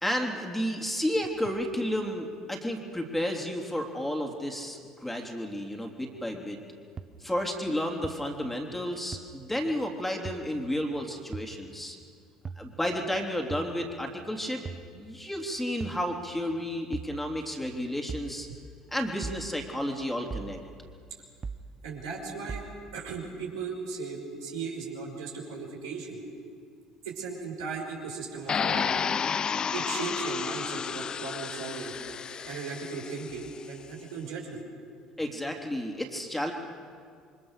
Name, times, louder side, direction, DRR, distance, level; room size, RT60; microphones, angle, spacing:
voice 1, 0.0-6.6 7.2-12.0 12.6-14.6 14.9-18.5 18.9-20.6 35.2-36.5, equal, 5° left, 2 dB, 3.4 m, -32 dB
sound 1, 7.0-7.1 8.0-8.1 9.1-9.2 10.3-10.4 11.3-11.5 12.5-12.7 13.5-13.7 14.7-14.9 15.8-16.0 16.9-17.2 18.1-18.3 19.2-19.4 20.3-20.5 21.4-21.7 22.5-22.7, right 5 dB, 30° right, 1.3 m, -37 dB
voice 2, 21.8-22.6 22.9-26.2 27.0-29.1 29.7-31.9 32.4-34.6, right 4 dB, 75° right, -1 dB, 5.7 m, -37 dB
sound 2, 28.5-33.5, left 6 dB, 35° left, 0.6 m, -31 dB
28.0 x 24.0 x 6.7 m, 2.2 s
figure-of-eight pair, 60°, 2 cm